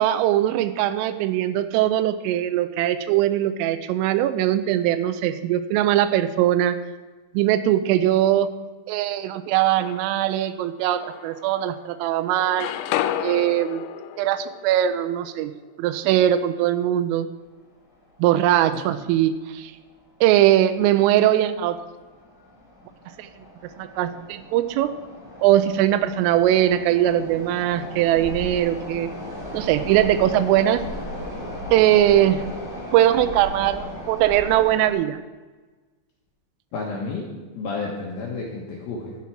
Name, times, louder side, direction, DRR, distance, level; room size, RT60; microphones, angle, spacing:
voice 1, 0.0-6.8 7.3-8.5 8.9-12.7 13.2-13.9 14.2-15.5 15.8-17.3 18.2-19.7 20.2-21.8 23.2-23.3 23.8-24.9 25.4-29.1 29.5-30.8 31.7-32.4 32.9-35.2, right 12 dB, 85° right, 10 dB, 3.2 m, -21 dB
sound 1, 9.5-10.3 10.9-11.9 12.2-16.1, left 12 dB, 85° left, 3.2 m, -32 dB
sound 2, 18.0-18.1 18.4-18.5 19.2-19.5 19.7-19.9 20.5-20.8 21.3-34.9, left 1 dB, 25° left, 1.6 m, -37 dB
voice 2, 36.7-39.2, left 3 dB, 70° left, -2 dB, 2.4 m, -31 dB
13.0 x 7.2 x 4.6 m, 1.3 s
omnidirectional pair, 5.8 m